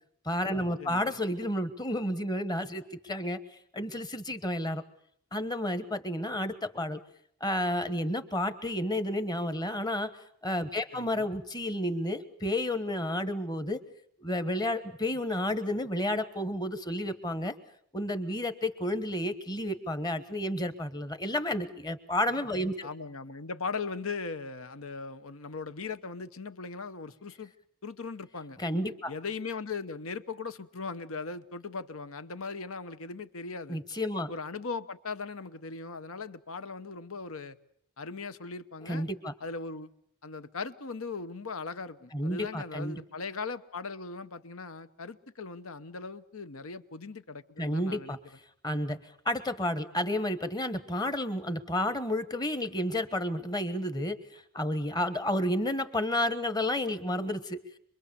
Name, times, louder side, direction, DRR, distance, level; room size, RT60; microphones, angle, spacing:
voice 1, 0.2-3.4 3.7-4.8 5.3-7.0 7.4-10.1 10.4-13.8 14.2-17.5 17.9-22.9 28.6-29.1 33.7-34.3 38.8-39.3 42.1-43.0 47.6-48.2 48.6-49.0 49.2-57.6, left 1 dB, 20° left, 1.2 m, -31 dB
voice 2, 0.8-1.2 10.9-11.3 22.8-27.5 27.8-28.6 29.1-33.8 34.3-37.6 38.0-39.0 39.4-39.9 40.2-48.2, left 4 dB, 70° left, 1.0 m, -39 dB
26.0 x 22.5 x 7.0 m
head